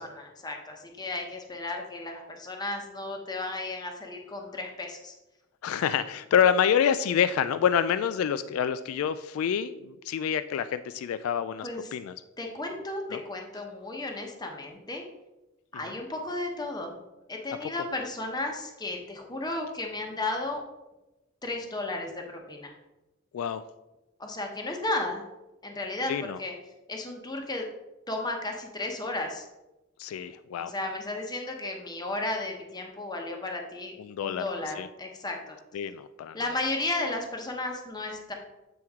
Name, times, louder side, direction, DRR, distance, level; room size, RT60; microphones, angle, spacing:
voice 1, 0.0-5.1 11.6-11.9 12.4-15.1 15.7-16.9 17.3-20.6 21.4-22.7 24.2-25.2 25.6-26.5 26.9-27.7 28.1-29.5 30.6-33.9 34.2-35.6 36.3-38.3, left 2 dB, 20° left, 2 dB, 0.9 m, -34 dB
voice 2, 5.6-12.1 13.1-13.2 23.3-23.6 26.1-26.4 30.0-30.7 34.0-34.4 34.8-34.9 35.7-36.4, left 8 dB, 90° left, 13 dB, 0.3 m, -27 dB
8.0 x 4.4 x 3.6 m, 1.0 s
head